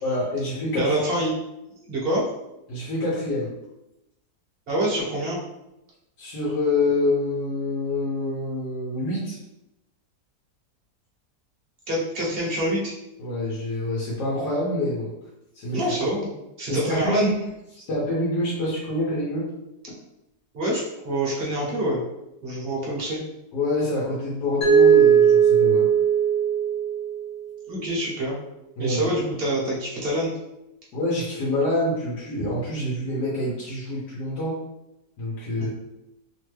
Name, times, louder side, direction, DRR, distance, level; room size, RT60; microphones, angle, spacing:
voice 1, 0.0-1.0 2.7-3.5 6.2-9.4 13.2-15.1 15.5-15.9 16.7-17.3 17.7-19.5 22.7-23.0 23.5-25.9 28.8-29.1 30.9-34.6 35.2-35.7, left 1 dB, 90° left, -5 dB, 1.3 m, -26 dB
voice 2, 0.7-1.3 1.9-2.2 4.7-5.4 11.9-12.9 15.7-16.3 16.6-17.3 20.5-22.0 22.4-23.2 27.7-28.4 28.8-30.3, right 1 dB, 45° right, -4 dB, 0.9 m, -26 dB
Mallet percussion, 24.6-27.5, right 7 dB, 65° left, 1.1 m, -18 dB
3.1 x 2.2 x 3.1 m, 0.89 s
omnidirectional pair, 1.7 m